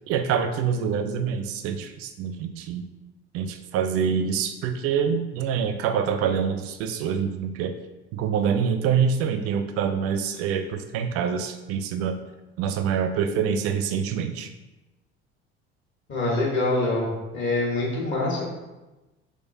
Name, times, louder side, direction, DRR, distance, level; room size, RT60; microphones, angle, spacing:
voice 1, 0.1-2.8 3.3-7.7 8.1-12.2 12.6-14.5, right 7 dB, 45° right, 8 dB, 0.4 m, -26 dB
voice 2, 16.1-18.5, left 2 dB, 35° left, -3 dB, 1.3 m, -25 dB
3.6 x 3.1 x 2.6 m, 1.1 s
figure-of-eight pair, 60°, 33 cm